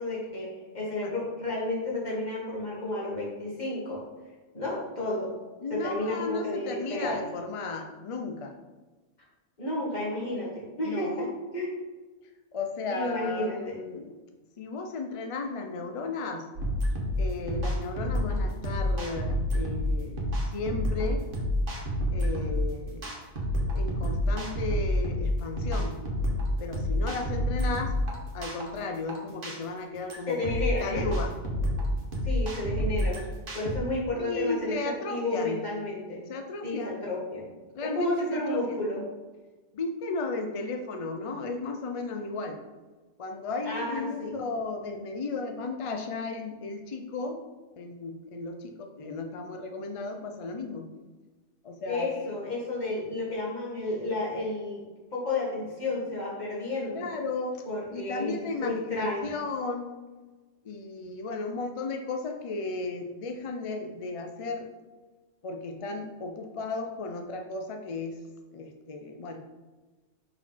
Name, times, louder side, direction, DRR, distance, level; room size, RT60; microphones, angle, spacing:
voice 1, 0.0-4.0 4.5-5.3 5.7-7.2 9.6-11.3 11.5-11.7 12.9-13.8 30.3-31.1 32.2-33.2 33.5-36.3 36.6-37.5 37.8-39.0 43.6-44.3 51.8-54.8 55.1-57.0 57.7-58.3 58.6-59.3, left 2 dB, 35° left, -5 dB, 2.0 m, -31 dB
voice 2, 5.6-8.6 10.8-11.3 12.5-14.2 14.6-16.5 17.2-21.3 22.1-23.1 23.7-26.0 26.6-28.0 28.3-31.3 34.2-35.6 36.3-37.0 37.7-38.8 39.7-42.6 43.2-47.4 47.8-50.9 51.6-52.1 56.9-57.6 57.9-60.0 60.6-64.7 65.4-68.2 68.5-69.4, left 3 dB, 55° left, 4 dB, 0.3 m, -34 dB
sound 1, 16.6-33.8, left 1 dB, 50° right, 1.3 m, -29 dB
4.4 x 4.4 x 5.6 m, 1.2 s
omnidirectional pair, 1.2 m